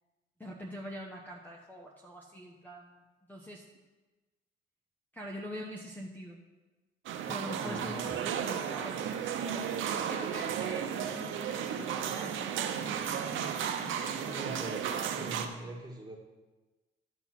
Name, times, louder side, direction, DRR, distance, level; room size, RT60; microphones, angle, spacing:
voice 1, 0.4-3.0 3.3-3.8 5.1-6.4 7.3-9.1 9.4-13.4 13.8-14.3 14.9-15.1, equal, 10° left, 0 dB, 0.9 m, -44 dB
sound 1, 7.1-15.5, right 8 dB, 80° right, 0.8 m, -34 dB
voice 2, 7.6-8.0 14.3-14.8 15.1-16.2, right 1 dB, 20° right, -1 dB, 1.8 m, -42 dB
12.0 x 4.0 x 6.0 m, 1.2 s
cardioid pair, 90°, 20 cm